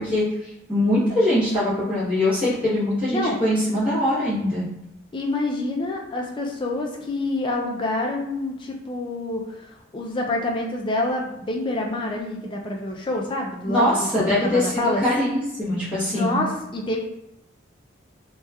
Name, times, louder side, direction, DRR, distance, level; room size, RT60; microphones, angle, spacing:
voice 1, 0.0-4.7 13.7-16.4, left 1 dB, 5° right, -13 dB, 0.9 m, -22 dB
voice 2, 5.1-9.6 9.9-14.1 14.4-15.0 16.0-17.0, left 2 dB, 25° left, 0 dB, 0.3 m, -27 dB
2.8 x 2.2 x 2.3 m, 0.84 s
head